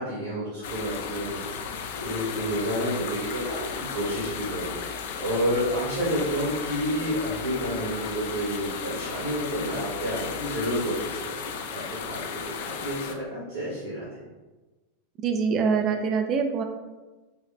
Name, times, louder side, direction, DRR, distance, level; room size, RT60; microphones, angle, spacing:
voice 1, 0.0-1.4 2.0-4.7 5.2-14.1, equal, 65° right, -7 dB, 1.3 m, -30 dB
sound 1, 0.6-13.1, left 6 dB, 55° left, 0.4 m, -35 dB
voice 2, 15.2-16.6, right 5 dB, 35° right, 5 dB, 0.4 m, -24 dB
5.4 x 2.4 x 3.1 m, 1.2 s
figure-of-eight pair, 90°, 0 cm